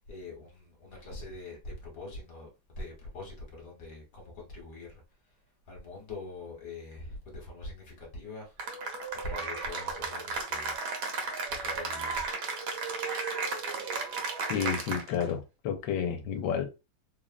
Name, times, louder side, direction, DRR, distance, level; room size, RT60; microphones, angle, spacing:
voice 1, 0.1-2.5 2.8-5.0 5.7-8.6 9.2-10.7 11.5-12.2, left 2 dB, 55° left, 1.3 m, -43 dB
Cheering / Applause, 8.6-15.3, right 4 dB, 70° right, 1.2 m, -34 dB
voice 2, 14.5-16.7, left 7 dB, 75° left, 1.3 m, -31 dB
3.5 x 2.0 x 2.4 m
omnidirectional pair, 2.2 m